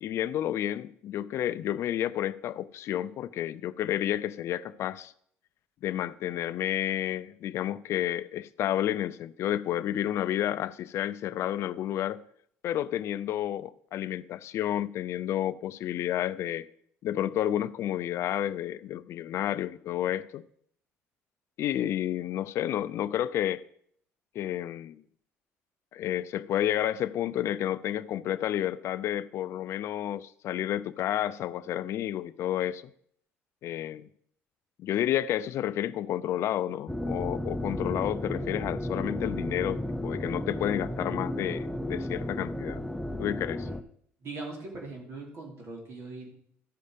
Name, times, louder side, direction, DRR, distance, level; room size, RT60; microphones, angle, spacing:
voice 1, 0.0-5.1 5.8-12.2 12.6-16.7 17.0-20.4 21.6-23.6 24.3-25.0 25.9-32.8 33.6-34.1 34.8-42.8 43.2-43.7, left 12 dB, 65° left, 0.4 m, -30 dB
sound 1, 36.9-43.8, left 1 dB, 5° left, 0.6 m, -33 dB
voice 2, 44.2-46.3, right 3 dB, 60° right, 3.0 m, -40 dB
13.5 x 5.4 x 5.1 m
cardioid pair, 100°, 5 cm